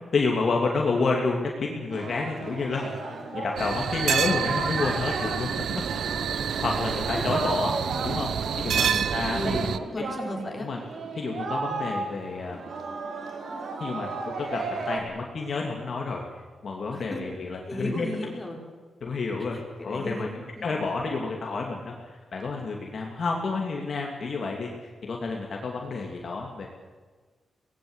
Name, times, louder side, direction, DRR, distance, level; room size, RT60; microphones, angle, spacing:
voice 1, 0.1-3.0 3.3-5.8 6.6-7.8 8.0-8.3 8.6-9.7 10.0-10.1 10.6-10.8 11.1-12.7 13.8-14.6 14.9-16.2 16.6-18.1 19.0-19.6 19.8-20.3 20.6-26.7, left 4 dB, 50° left, 0 dB, 2.8 m, -29 dB
Singing, 1.9-15.0, right 3 dB, 60° right, 3.7 m, -35 dB
sound 1, 3.6-9.8, right 8 dB, 80° right, 0.9 m, -28 dB
voice 2, 8.7-10.7 16.9-17.4 17.7-18.6 19.5-20.8, left 1 dB, 15° left, 0 dB, 4.7 m, -35 dB
25.0 x 19.0 x 8.2 m, 1.4 s
wide cardioid pair, 145°, 0 cm